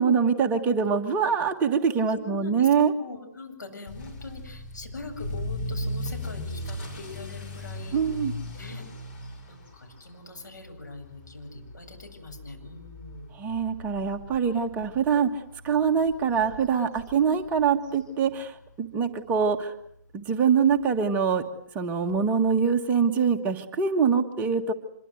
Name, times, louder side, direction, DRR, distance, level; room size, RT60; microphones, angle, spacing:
voice 1, 0.0-2.9 7.9-8.3 13.4-19.7 20.1-21.4 21.7-24.7, right 6 dB, 15° right, 5 dB, 1.5 m, -24 dB
voice 2, 2.1-2.7 3.0-8.0 8.5-8.8 9.5-13.3, left 2 dB, 80° left, 3 dB, 7.9 m, -42 dB
Motor vehicle (road) / Accelerating revving vroom, 3.9-18.7 19.0-19.4 19.9-20.0 20.3-20.4 20.7-20.8 22.1-22.2, left 1 dB, 35° left, 7.3 m, -38 dB
26.0 x 23.0 x 8.0 m, 0.71 s
figure-of-eight pair, 135°, 10 cm